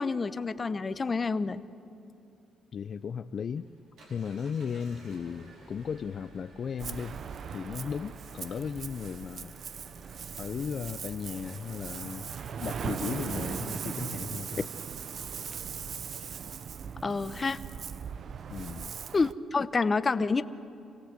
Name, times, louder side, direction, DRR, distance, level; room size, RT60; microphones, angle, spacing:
voice 1, 0.0-1.6 17.0-17.6 19.1-20.4, left 4 dB, 30° left, 13 dB, 0.8 m, -28 dB
voice 2, 2.7-3.7 4.1-7.2 7.5-9.6 10.4-12.3 12.6-14.7 18.5-18.9, left 7 dB, 50° left, 10 dB, 0.5 m, -36 dB
Engine, 3.3-12.6, right 1 dB, 75° right, 4.9 m, -54 dB
Ocean, 6.8-19.3, right 7 dB, 55° right, 0.6 m, -39 dB
26.0 x 17.5 x 8.1 m, 2.7 s
cardioid pair, 90°, 0 cm